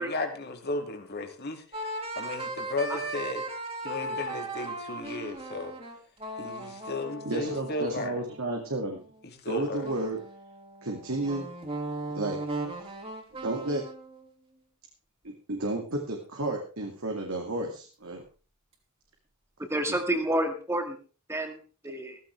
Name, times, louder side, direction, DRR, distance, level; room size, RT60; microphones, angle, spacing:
voice 1, 0.0-1.8 2.2-3.4 3.8-5.7 6.4-8.2 9.2-9.8, left 2 dB, 50° left, 5 dB, 2.5 m, -34 dB
sound 1, 1.7-9.1 9.8-14.3, right 2 dB, 30° right, 3.3 m, -37 dB
voice 2, 7.2-9.0 9.5-10.2 10.8-11.5 12.1-12.4 13.4-13.8 15.2-18.2, right 2 dB, 70° right, 1 dB, 2.4 m, -32 dB
voice 3, 19.7-21.0 21.3-22.2, right 1 dB, 10° right, 5 dB, 2.0 m, -29 dB
15.5 x 15.0 x 3.4 m, 0.36 s
head